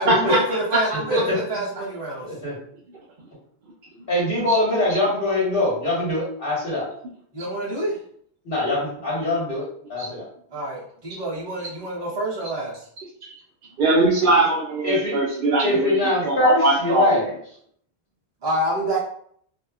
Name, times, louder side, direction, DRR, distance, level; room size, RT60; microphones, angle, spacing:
voice 1, 0.0-2.3 7.3-7.9 10.5-12.7 18.4-19.0, right 1 dB, 25° right, -6 dB, 0.8 m, -27 dB
voice 2, 0.9-1.3 2.2-2.5 4.1-6.9 8.4-9.6 9.9-10.2 14.8-15.1 15.6-17.4, left 2 dB, 60° left, -7 dB, 1.6 m, -23 dB
voice 3, 13.8-17.2, right 2 dB, 65° right, -5 dB, 0.7 m, -20 dB
2.7 x 2.3 x 2.3 m, 0.63 s
omnidirectional pair, 1.0 m